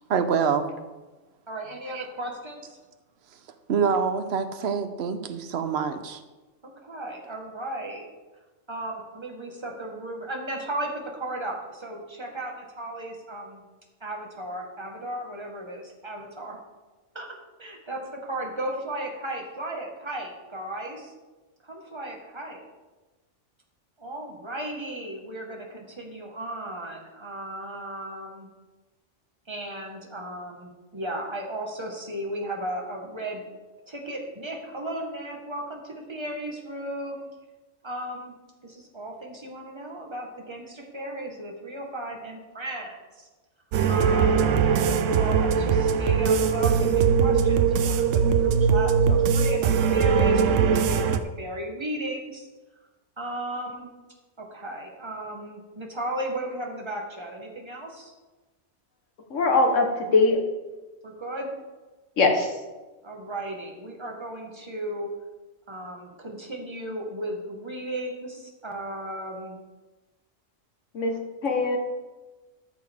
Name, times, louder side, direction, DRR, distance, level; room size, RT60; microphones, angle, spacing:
voice 1, 0.1-0.7 1.9-2.1 3.7-6.2, right 6 dB, 60° right, 9 dB, 1.0 m, -26 dB
voice 2, 1.5-2.8 6.8-8.0 8.7-13.6 14.0-16.6 17.1-17.3 17.6-21.1 21.6-22.6 24.0-28.5 29.5-33.4 33.9-37.2 37.8-38.4 38.6-43.3 43.9-52.5 53.2-53.9 54.4-58.1 61.0-61.5 63.0-65.1 65.7-69.6, right 1 dB, 25° right, 0 dB, 1.5 m, -35 dB
sound 1, 43.7-51.2, right 6 dB, 85° right, 1.0 m, -21 dB
voice 3, 59.3-60.4 62.2-62.5 70.9-71.8, left 3 dB, 80° left, 3 dB, 1.5 m, -22 dB
13.0 x 6.8 x 3.5 m, 1.2 s
omnidirectional pair, 1.3 m